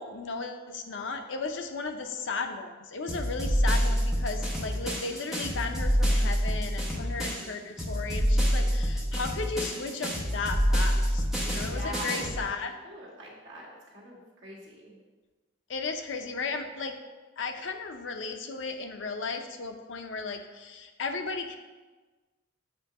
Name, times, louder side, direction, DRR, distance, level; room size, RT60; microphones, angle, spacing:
voice 1, 0.0-12.8 15.7-17.0 17.4-21.6, left 4 dB, 70° left, 5 dB, 0.6 m, -35 dB
sound 1, 3.1-7.5 7.8-12.4, equal, ahead, 0.9 m, -27 dB
voice 2, 4.3-4.9 6.9-7.4 11.4-15.0, equal, 65° right, -6 dB, 1.9 m, -44 dB
7.6 x 2.7 x 5.8 m, 1.3 s
head